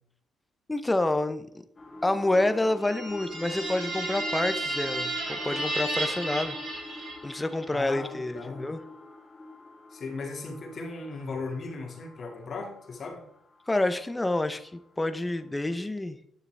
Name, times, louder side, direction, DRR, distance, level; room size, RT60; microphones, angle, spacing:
voice 1, 0.7-1.5 2.0-6.6 7.2-8.8 13.7-16.2, left 2 dB, 15° left, 10 dB, 0.7 m, -28 dB
sound 1, 1.8-14.9 15.4-15.5, left 3 dB, 30° left, 1.6 m, -46 dB
sound 2, 2.8-7.5, right 2 dB, 70° right, 3.7 m, -33 dB
voice 2, 7.7-8.7 9.9-13.2, left 3 dB, 50° left, 2 dB, 2.3 m, -37 dB
10.0 x 6.7 x 3.4 m, 0.71 s
cardioid pair, 90°, 0 cm